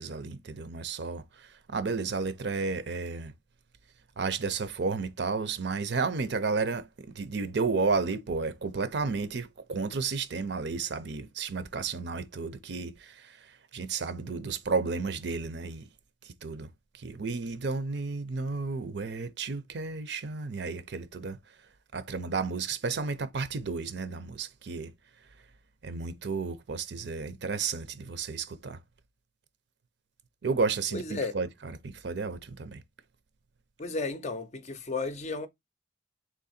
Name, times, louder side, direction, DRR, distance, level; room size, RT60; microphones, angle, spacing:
voice 1, 0.0-3.3 4.2-15.9 16.2-21.4 21.9-24.9 25.8-28.8 30.4-32.8, right 4 dB, 60° right, 0.6 m, -32 dB
voice 2, 30.9-31.3 33.8-35.5, left 3 dB, 35° left, 0.5 m, -33 dB
3.8 x 3.1 x 4.2 m
head